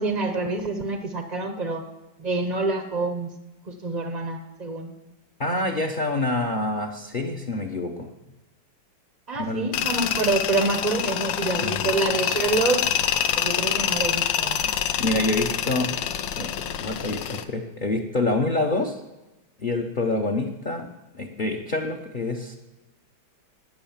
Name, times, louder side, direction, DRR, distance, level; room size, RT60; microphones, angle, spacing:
voice 1, 0.0-1.8 2.2-3.3 3.7-4.9 9.3-12.9 13.3-14.7, right 3 dB, 40° right, 7 dB, 0.5 m, -27 dB
voice 2, 5.4-8.1 9.4-9.7 11.6-11.8 14.8-15.9 16.4-19.0 19.6-20.9 21.1-22.6, left 2 dB, 40° left, 4 dB, 0.7 m, -27 dB
Tools, 9.7-17.4, left 9 dB, 75° left, 1.4 m, -26 dB
18.0 x 6.3 x 7.3 m, 1.0 s
omnidirectional pair, 2.2 m